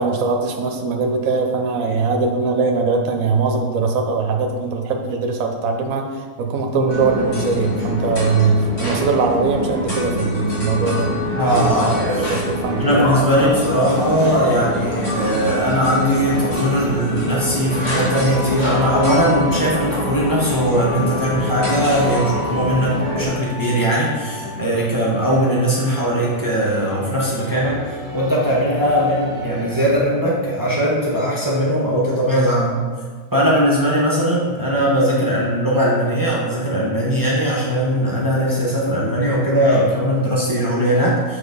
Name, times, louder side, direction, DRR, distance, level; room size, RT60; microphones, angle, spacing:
voice 1, 0.0-11.1 12.2-13.3, right 4 dB, 70° right, 3 dB, 1.2 m, -21 dB
sound 1, 6.9-23.2, left 1 dB, 50° left, 1.9 m, -25 dB
voice 2, 11.3-12.3 12.8-32.9 33.3-41.4, equal, 15° right, -6 dB, 1.2 m, -19 dB
sound 2, 11.6-29.9, equal, 25° left, 1.6 m, -33 dB
6.9 x 3.6 x 5.3 m, 1.5 s
omnidirectional pair, 1.5 m